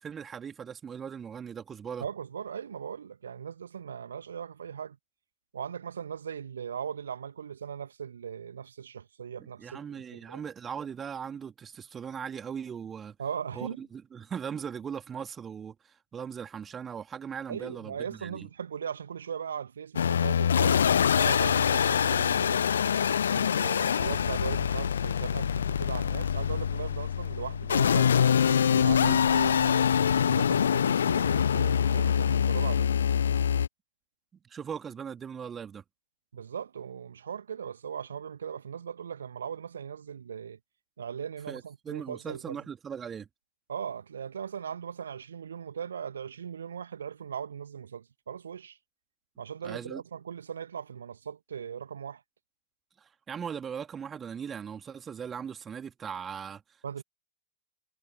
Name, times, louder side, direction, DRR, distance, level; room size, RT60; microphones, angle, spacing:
voice 1, 0.0-2.0 9.6-13.1 13.5-18.5 29.0-29.2 34.4-35.8 41.5-43.3 49.6-50.0 53.0-56.6, right 7 dB, 20° right, 3.2 m, -39 dB
voice 2, 2.0-5.0 5.5-10.4 13.2-13.8 17.5-22.6 23.3-28.2 28.7-32.9 36.3-40.6 41.0-42.6 43.7-48.8 49.4-52.2 56.8-57.0, right 7 dB, 70° right, 2.1 m, -39 dB
sound 1, 20.0-33.7, left 8 dB, 65° left, 0.6 m, -25 dB
figure-of-eight pair, 90°, 0 cm